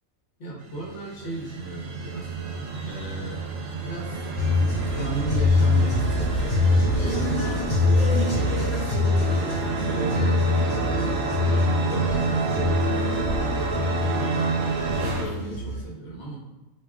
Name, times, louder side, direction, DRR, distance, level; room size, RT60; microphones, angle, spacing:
voice 1, 0.4-2.3 2.8-3.5 3.8-4.3 4.6-16.4, right 1 dB, 55° left, -4 dB, 1.2 m, -36 dB
sound 1, 0.6-15.2, right 4 dB, 80° right, 1.0 m, -29 dB
sound 2, 4.4-15.8, left 2 dB, 30° left, 1.5 m, -24 dB
4.5 x 2.8 x 2.4 m, 1.1 s
omnidirectional pair, 1.4 m